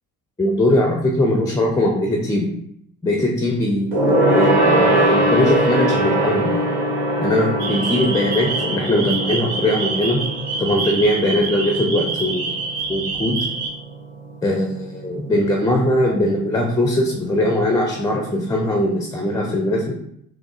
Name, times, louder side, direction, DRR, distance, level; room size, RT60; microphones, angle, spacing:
voice 1, 0.4-2.5 3.0-3.9 4.3-6.6 7.2-10.2 10.6-12.6 12.9-13.5 14.4-19.9, left 1 dB, 10° left, 0 dB, 0.5 m, -20 dB
Gong, 3.9-13.7 14.0-14.2 14.5-14.6, right 1 dB, 75° right, 1.2 m, -21 dB
sound 1, 7.6-13.7, right 4 dB, 55° right, 0.8 m, -27 dB
5.7 x 2.0 x 2.4 m, 0.73 s
figure-of-eight pair, 55°, 47 cm